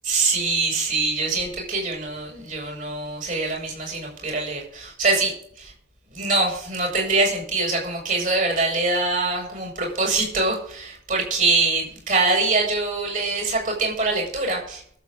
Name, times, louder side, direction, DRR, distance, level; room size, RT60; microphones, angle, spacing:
voice 1, 0.0-5.7 6.1-14.8, right 3 dB, 40° right, 0 dB, 7.6 m, -24 dB
23.5 x 8.4 x 4.0 m, 0.63 s
head